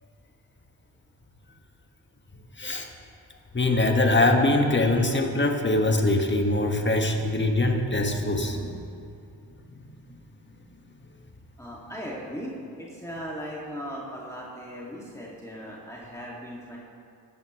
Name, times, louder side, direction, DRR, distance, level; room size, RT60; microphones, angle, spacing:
voice 1, 2.6-2.9 3.5-8.8 9.7-9.8 10.1-10.2, left 2 dB, 25° left, 3 dB, 1.6 m, -23 dB
voice 2, 11.6-16.8, equal, 5° left, -5 dB, 2.3 m, -38 dB
16.0 x 10.5 x 3.2 m, 2.5 s
supercardioid pair, 50°, 47 cm